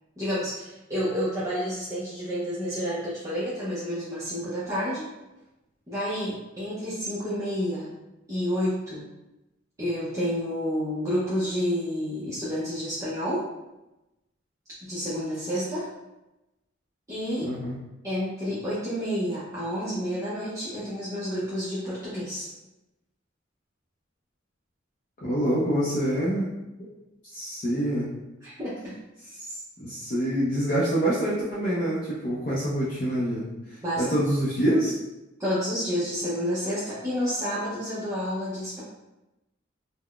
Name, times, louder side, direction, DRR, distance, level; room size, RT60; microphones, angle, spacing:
voice 1, 0.2-5.0 5.9-7.9 8.3-9.1 9.8-13.4 14.8-15.9 17.1-17.5 18.0-22.5 28.4-29.0 33.8-34.0 35.4-38.8, equal, 15° right, -11 dB, 0.5 m, -29 dB
voice 2, 17.4-17.8 25.2-26.5 27.3-28.1 29.5-34.9, right 1 dB, 40° left, -8 dB, 0.5 m, -26 dB
3.7 x 2.0 x 2.3 m, 0.97 s
head